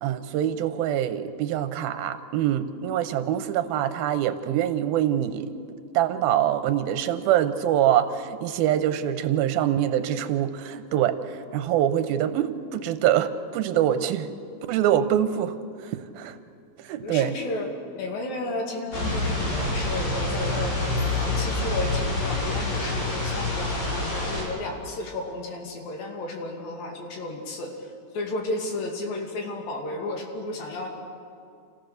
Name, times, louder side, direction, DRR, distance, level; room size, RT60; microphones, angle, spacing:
voice 1, 0.0-5.5 5.9-14.3 14.7-16.4 16.8-17.4, right 11 dB, 85° right, 11 dB, 2.7 m, -24 dB
voice 2, 17.0-17.7 17.9-20.8 21.2-30.9, left 2 dB, 70° left, 2 dB, 4.0 m, -33 dB
sound 1, 18.9-24.4, left 2 dB, 50° left, 5.9 m, -27 dB
28.5 x 15.5 x 6.6 m, 2.4 s
omnidirectional pair, 4.2 m